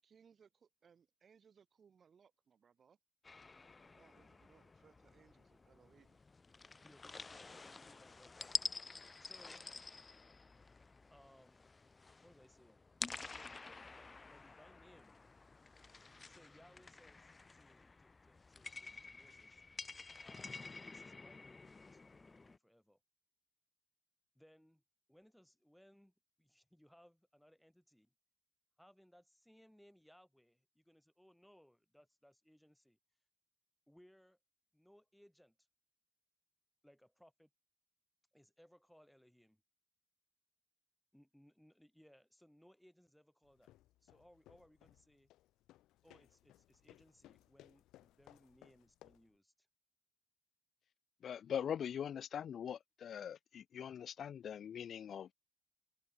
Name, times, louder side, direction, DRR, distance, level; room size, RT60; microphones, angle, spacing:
voice 1, 0.0-3.0 3.8-6.2, right 7 dB, 50° right, 5.8 m, -68 dB
sound 1, 3.2-22.6, left 3 dB, 25° left, 1.2 m, -49 dB
voice 2, 6.8-8.5 9.2-9.7 11.1-11.6 12.2-12.8 13.3-15.2 16.3-19.6 20.2-23.0 24.3-24.8 25.1-28.1 28.8-33.0 33.9-34.4 34.7-35.7 36.8-37.5 38.3-39.6 41.1-43.7 44.0-45.3 46.0-49.7, equal, ahead, 4.0 m, -66 dB
sound 2, 43.4-49.4, left 15 dB, 90° left, 5.7 m, -64 dB
voice 3, 51.2-55.3, left 8 dB, 60° left, 0.4 m, -42 dB
open air
cardioid pair, 90°, 0 cm